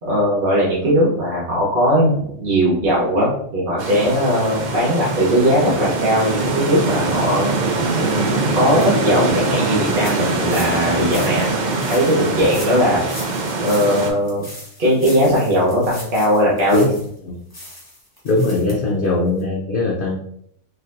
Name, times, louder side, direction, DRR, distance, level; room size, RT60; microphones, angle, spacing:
voice 1, 0.0-7.5 7.9-11.6 11.8-13.0 13.6-14.4 14.8-16.9, equal, 40° right, -6 dB, 1.1 m, -18 dB
sound 1, 3.8-14.1, right 3 dB, 65° right, 0.4 m, -23 dB
sound 2, 5.1-5.2 5.6-5.7 6.2-6.3 6.8-6.9 7.5-7.6 8.1-8.2 8.5-8.8 9.3-9.5 10.0-17.2 17.5-18.7 19.0-19.1 19.4-19.5, left 1 dB, 20° left, 1.0 m, -38 dB
voice 2, 18.2-20.2, left 2 dB, 55° left, -2 dB, 0.6 m, -20 dB
3.9 x 2.8 x 2.6 m, 0.67 s
omnidirectional pair, 1.4 m